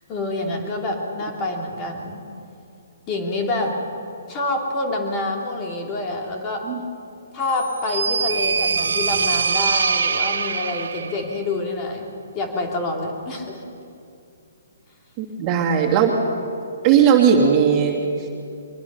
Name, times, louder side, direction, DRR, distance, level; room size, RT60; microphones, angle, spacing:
voice 1, 0.1-2.2 3.1-3.8 4.3-6.6 7.3-12.1 12.3-13.6, left 2 dB, 25° left, 0 dB, 3.1 m, -27 dB
sound 1, 7.5-11.2, right 5 dB, 70° right, 1.3 m, -23 dB
voice 2, 15.2-16.2 16.8-18.3, right 7 dB, 30° right, -1 dB, 2.6 m, -17 dB
23.5 x 19.5 x 5.7 m, 2.5 s
hypercardioid pair, 135°, 0 cm